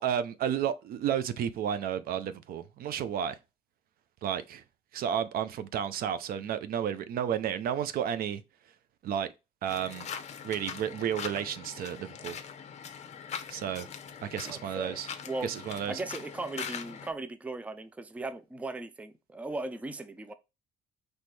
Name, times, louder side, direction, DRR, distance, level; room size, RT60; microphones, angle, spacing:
voice 1, 0.0-3.4 4.2-4.6 4.9-8.4 9.0-9.3 9.6-10.1 10.4-12.4 13.5-13.9 14.2-15.1 15.4-16.0, right 9 dB, 60° right, 0.5 m, -32 dB
sound 1, 9.7-17.1, left 7 dB, 40° left, 0.7 m, -42 dB
voice 2, 14.4-15.0 15.2-15.5 15.9-20.3, right 2 dB, 10° right, 0.4 m, -37 dB
4.3 x 3.3 x 3.2 m
cardioid pair, 110°, 17 cm